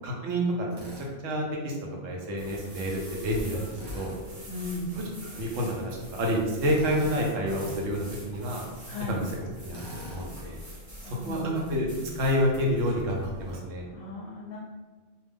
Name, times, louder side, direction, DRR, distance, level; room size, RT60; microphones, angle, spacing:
voice 1, 0.0-1.8 2.0-3.7 3.9-4.1 5.3-8.6 9.1-9.3 9.6-10.6 11.0-11.9 12.1-13.8, equal, 85° right, -1 dB, 1.0 m, -29 dB
Drill, 0.7-1.1 3.7-4.2 6.7-7.3 9.7-10.3, equal, 40° right, 0.3 m, -41 dB
sound 1, 2.4-13.6, equal, 65° right, 1.2 m, -44 dB
voice 2, 4.5-4.9 8.9-9.2 11.0-11.6 13.9-14.6, left 3 dB, 60° left, -3 dB, 0.6 m, -37 dB
2.7 x 2.1 x 3.4 m, 1.3 s
omnidirectional pair, 1.3 m